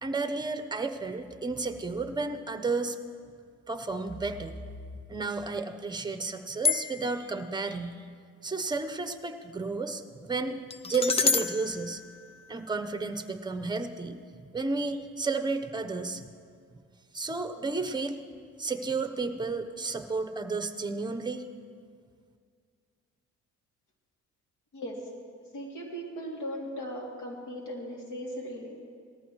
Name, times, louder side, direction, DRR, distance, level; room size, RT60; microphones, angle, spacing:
voice 1, 0.0-3.0 3.7-4.6 5.1-8.0 8.4-12.0 12.5-14.2 14.5-16.3 17.1-18.2 18.6-21.4, right 3 dB, 15° right, 9 dB, 0.9 m, -32 dB
sound 1, 6.6-7.3 10.7-13.0, left 4 dB, 20° left, 0.4 m, -30 dB
voice 2, 24.7-25.0 25.5-28.8, equal, 80° left, -1 dB, 2.9 m, -38 dB
18.5 x 14.0 x 3.2 m, 2.1 s
cardioid pair, 90°, 30 cm